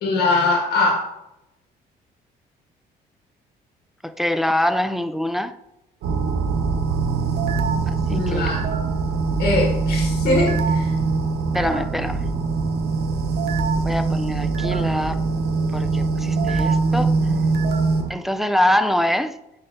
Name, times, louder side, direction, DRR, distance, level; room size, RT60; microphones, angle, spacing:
voice 1, 0.0-1.0 8.1-8.6 9.4-10.9, left 3 dB, 70° left, 1.6 m, -21 dB
voice 2, 4.0-5.6 7.9-8.6 11.5-12.2 13.8-15.2 15.7-17.2 18.1-19.4, left 1 dB, ahead, 0.3 m, -24 dB
sound 1, 6.0-18.1, right 4 dB, 75° right, 0.8 m, -22 dB
8.9 x 4.4 x 2.6 m
cardioid pair, 110°, 17 cm